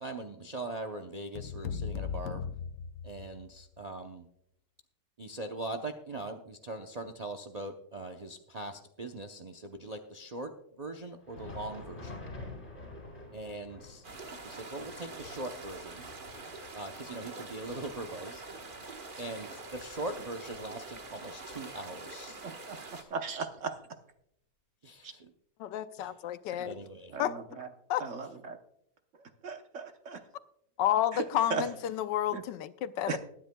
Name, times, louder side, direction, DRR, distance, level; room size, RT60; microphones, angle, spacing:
voice 1, 0.0-2.4 3.0-4.3 5.2-12.2 13.3-14.0 14.4-16.0 16.7-18.4 19.2-22.4 22.9-23.1 24.8-25.3 26.0-26.1 26.6-27.2, right 2 dB, 80° right, 0.3 m, -41 dB
sound 1, 1.3-3.6, left 7 dB, 65° left, 1.0 m, -38 dB
Thunder, 11.1-20.6 20.9-21.1 21.8-21.9 22.9-23.0, left 2 dB, 30° left, 3.7 m, -49 dB
sound 2, 14.0-23.0, right 3 dB, 35° right, 1.2 m, -45 dB
voice 2, 22.4-22.8 23.1-23.8 25.0-25.1 26.5-26.6 27.1-27.7 28.0-28.6 29.4-29.9 31.1-31.2 31.5-31.7 32.3-32.4 33.1-33.2, right 5 dB, 50° right, 1.1 m, -36 dB
voice 3, 25.6-26.8 27.2-27.3 27.9-28.0 30.8-33.2, left 11 dB, 85° left, 1.3 m, -30 dB
21.0 x 10.0 x 2.2 m
omnidirectional pair, 1.9 m